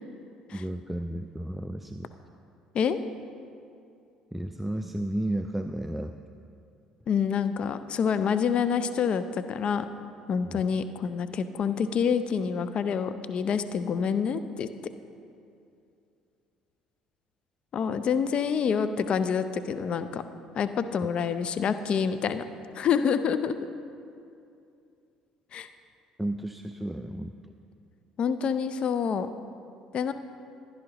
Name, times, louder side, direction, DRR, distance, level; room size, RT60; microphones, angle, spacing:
voice 1, 0.5-2.1 4.3-6.2 10.4-10.7 26.2-27.4, right 1 dB, 5° right, 7 dB, 0.4 m, -33 dB
voice 2, 7.1-9.9 10.3-14.7 17.7-20.2 20.6-22.4 22.7-23.5 25.5-25.7 28.2-29.3 29.9-30.1, left 7 dB, 50° left, 11 dB, 0.6 m, -27 dB
15.5 x 10.5 x 3.0 m, 2.5 s
hypercardioid pair, 65°, 2 cm